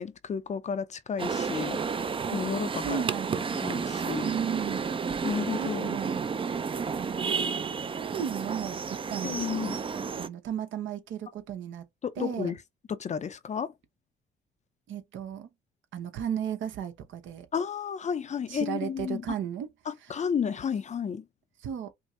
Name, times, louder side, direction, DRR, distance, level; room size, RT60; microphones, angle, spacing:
voice 1, 0.0-1.8 2.3-3.0 3.6-4.3 5.2-6.0 9.2-9.8 12.0-12.6 12.9-13.7 17.5-19.2 19.9-21.2, left 7 dB, 35° left, 0.5 m, -32 dB
sound 1, 1.2-10.3, right 5 dB, 25° right, 0.4 m, -31 dB
voice 2, 2.8-3.8 4.2-4.9 5.6-6.2 6.9-7.6 8.0-9.6 10.2-11.8 12.2-12.5 14.9-15.5 15.9-17.5 18.5-19.7 20.1-20.2 21.6-21.9, right 9 dB, 75° right, 0.9 m, -35 dB
5.2 x 2.0 x 2.5 m
cardioid pair, 90°, 20 cm